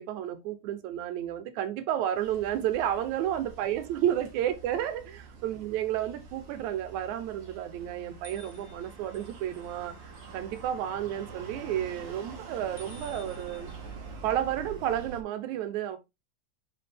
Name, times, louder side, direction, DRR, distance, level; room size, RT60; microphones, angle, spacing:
voice 1, 0.0-9.9 10.3-13.7 14.2-16.0, right 11 dB, 85° right, 2.2 m, -31 dB
sound 1, 2.1-15.2, right 4 dB, 55° right, 1.4 m, -46 dB
sound 2, 8.2-9.8 10.1-10.6 12.8-14.0, left 2 dB, 90° left, 2.4 m, -53 dB
5.6 x 4.8 x 3.6 m
omnidirectional pair, 3.3 m